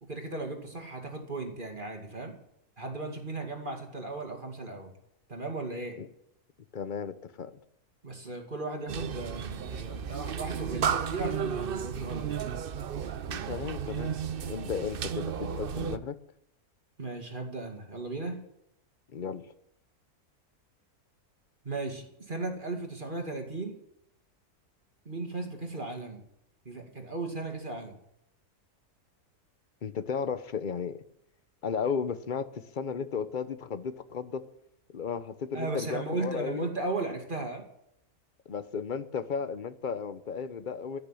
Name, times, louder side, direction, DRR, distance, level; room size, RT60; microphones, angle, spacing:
voice 1, 0.0-2.4 2.8-4.9 5.3-6.0 8.0-12.5 17.0-18.4 21.6-23.8 25.1-26.2 26.7-28.0 35.5-37.7, right 2 dB, 35° right, 2.3 m, -36 dB
voice 2, 6.7-7.6 13.3-14.1 14.5-16.2 19.1-19.4 29.8-31.0 31.6-34.5 34.9-36.6 38.5-41.0, left 6 dB, 40° left, 0.8 m, -34 dB
sound 1, 8.9-16.0, right 7 dB, 50° right, 0.7 m, -33 dB
16.5 x 6.6 x 10.0 m
omnidirectional pair, 1.6 m